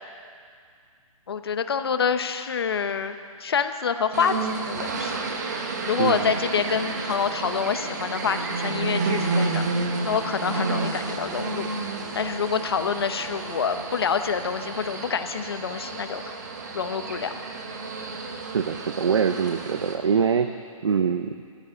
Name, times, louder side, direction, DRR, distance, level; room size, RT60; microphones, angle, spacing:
voice 1, 1.3-9.6 10.0-11.7 12.1-16.4 16.7-17.3, left 6 dB, 45° left, 9 dB, 0.8 m, -27 dB
sound 1, 4.1-20.0, right 3 dB, 30° right, 1.1 m, -31 dB
voice 2, 6.0-6.3 18.5-20.5 20.8-21.4, right 6 dB, 50° right, 9 dB, 0.6 m, -24 dB
14.5 x 9.4 x 8.4 m, 2.2 s
hypercardioid pair, 175°, 18 cm